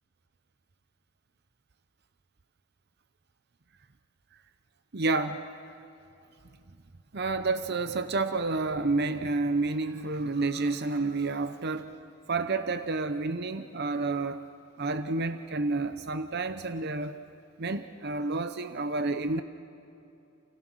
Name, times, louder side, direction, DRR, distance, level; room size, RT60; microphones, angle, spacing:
voice 1, 4.9-5.4 7.1-11.9 12.3-14.4 14.8-17.2 17.6-19.4, right 3 dB, 55° right, 9 dB, 0.8 m, -29 dB
29.5 x 29.5 x 6.4 m, 2.7 s
head